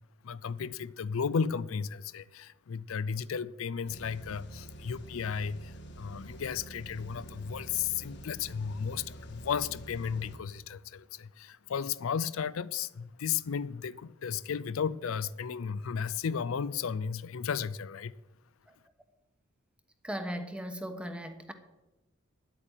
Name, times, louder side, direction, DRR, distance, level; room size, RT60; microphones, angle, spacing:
voice 1, 0.2-18.1, left 6 dB, 80° left, 0.4 m, -34 dB
sound 1, 3.9-10.4, right 1 dB, 55° left, 1.5 m, -47 dB
voice 2, 20.0-21.5, equal, 5° right, 1.1 m, -37 dB
10.5 x 8.4 x 8.9 m
head